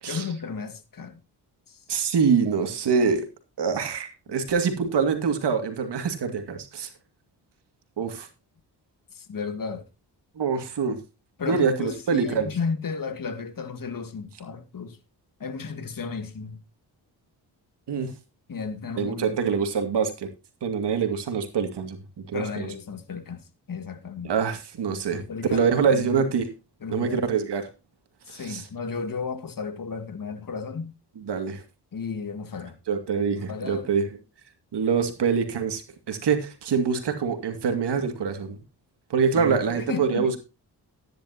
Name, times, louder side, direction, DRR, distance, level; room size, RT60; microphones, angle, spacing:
voice 1, 0.1-1.2 1.7-1.8 9.1-9.8 11.4-15.0 15.4-16.6 18.5-19.6 22.3-24.3 25.1-26.2 26.8-27.3 28.3-30.9 31.9-32.8 33.3-33.9 39.3-40.4, left 5 dB, 50° left, 2.2 m, -34 dB
voice 2, 1.9-3.3 3.6-6.9 8.0-8.3 10.4-11.0 11.5-12.5 17.9-18.1 19.0-20.3 20.6-22.0 22.3-22.7 24.2-25.2 25.5-26.5 26.9-27.6 28.3-28.6 31.2-31.6 32.9-34.1 34.7-38.6 39.1-40.4, right 6 dB, 75° right, 2.4 m, -25 dB
14.0 x 10.5 x 2.9 m
cardioid pair, 70°, 41 cm